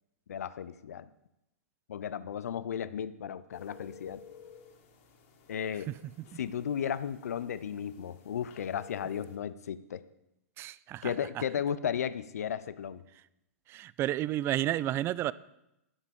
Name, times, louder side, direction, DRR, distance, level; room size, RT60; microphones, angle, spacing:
voice 1, 0.3-1.1 1.9-4.2 5.5-5.9 6.4-10.0 11.0-13.0, left 8 dB, 75° left, 15 dB, 0.6 m, -34 dB
sound 1, 3.5-9.4, left 7 dB, 55° left, 2.3 m, -54 dB
voice 2, 10.6-11.1 13.7-15.3, right 14 dB, 30° right, 20 dB, 0.4 m, -31 dB
11.5 x 7.4 x 6.9 m, 0.86 s
hypercardioid pair, 110°, 8 cm